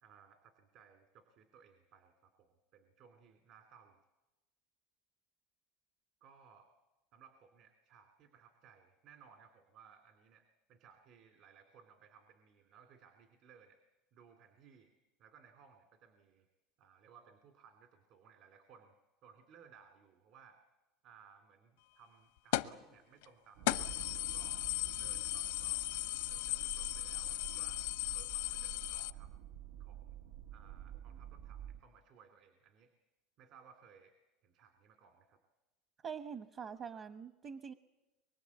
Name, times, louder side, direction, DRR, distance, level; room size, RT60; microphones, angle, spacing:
voice 1, 0.0-4.0 6.2-6.7 7.1-14.9 15.2-16.5 16.8-18.9 19.2-20.6 21.0-24.6 24.9-27.9 28.1-29.3 29.8-30.2 30.5-32.9 33.4-34.1 34.4-35.4, right 7 dB, 55° right, 6 dB, 2.6 m, -62 dB
sound 1, 22.5-22.8 23.2-23.3 23.7-29.1, left 17 dB, 90° left, 0.8 m, -37 dB
sound 2, 23.5-31.8, right 9 dB, 80° right, 0.8 m, -49 dB
voice 2, 36.0-37.7, right 6 dB, 35° right, 11 dB, 1.0 m, -44 dB
24.0 x 23.0 x 8.3 m, 1.1 s
supercardioid pair, 140°, 0 cm